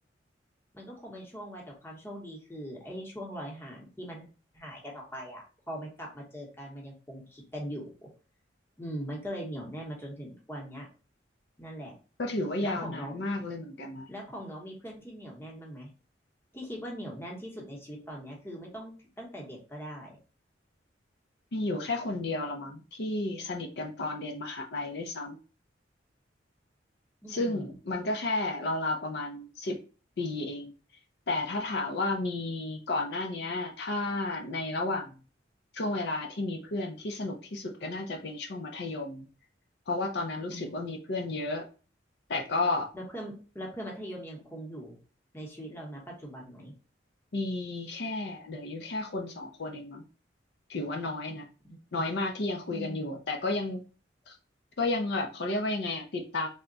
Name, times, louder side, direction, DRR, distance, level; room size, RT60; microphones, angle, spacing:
voice 1, 0.7-4.3 4.5-8.1 8.8-10.9 11.6-11.9 12.6-13.5 14.1-15.9 16.5-20.2 27.2-27.8 40.5-41.0 42.9-45.0 45.3-46.7 51.6-52.0 52.7-53.2, equal, 15° left, -2 dB, 0.9 m, -41 dB
voice 2, 12.2-14.1 21.5-25.4 27.3-29.8 30.2-30.7 31.3-35.1 35.7-39.3 39.9-41.7 42.3-42.9 47.3-50.0 50.7-51.5 51.9-53.8 54.3-54.4 54.8-56.5, left 2 dB, 60° left, 2 dB, 0.5 m, -32 dB
3.4 x 2.2 x 3.8 m, 0.36 s
head